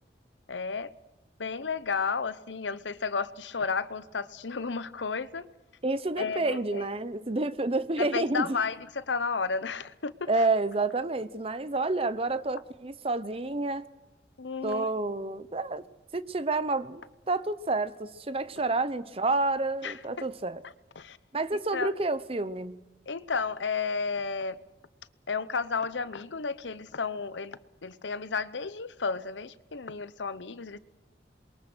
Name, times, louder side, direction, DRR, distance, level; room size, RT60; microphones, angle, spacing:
voice 1, 0.5-0.9 1.4-5.5 6.2-6.9 8.0-10.3 14.4-14.9 19.8-20.3 21.0-21.2 21.7-21.9 23.1-24.6 25.3-30.8, left 5 dB, 90° left, 0.9 m, -32 dB
voice 2, 5.8-8.6 10.3-13.9 14.6-15.9 16.1-20.6 21.3-22.8, right 2 dB, 35° right, 0.8 m, -29 dB
27.5 x 22.5 x 6.2 m
head